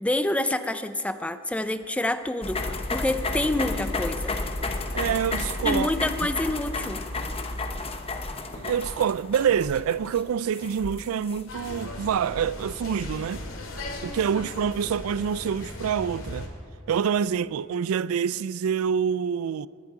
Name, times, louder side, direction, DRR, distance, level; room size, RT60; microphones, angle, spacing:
voice 1, 0.0-4.3 5.6-7.0, left 1 dB, 5° left, 0.5 m, -27 dB
sound 1, 2.4-11.7, left 3 dB, 25° left, 0.9 m, -32 dB
voice 2, 4.9-5.9 8.5-13.4 14.0-16.5 16.9-19.7, right 7 dB, 85° right, 0.3 m, -26 dB
sound 2, 11.5-16.5, left 2 dB, 65° left, 2.2 m, -38 dB
20.0 x 12.0 x 4.8 m
head